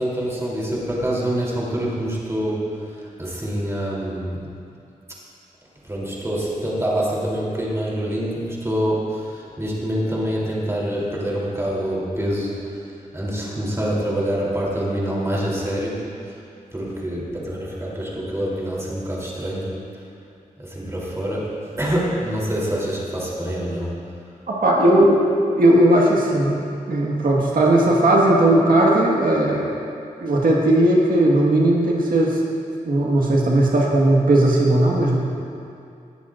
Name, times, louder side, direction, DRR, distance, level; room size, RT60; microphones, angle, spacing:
voice 1, 0.0-4.5 5.8-12.9 13.1-16.4 16.7-20.0 20.6-24.0, equal, 20° right, -5 dB, 3.3 m, -26 dB
voice 2, 24.5-25.2 25.6-26.6 26.9-29.6 30.2-32.4 32.8-35.2, right 1 dB, 80° right, -3 dB, 1.7 m, -17 dB
19.5 x 14.0 x 2.6 m, 2.5 s
wide cardioid pair, 130°, 14 cm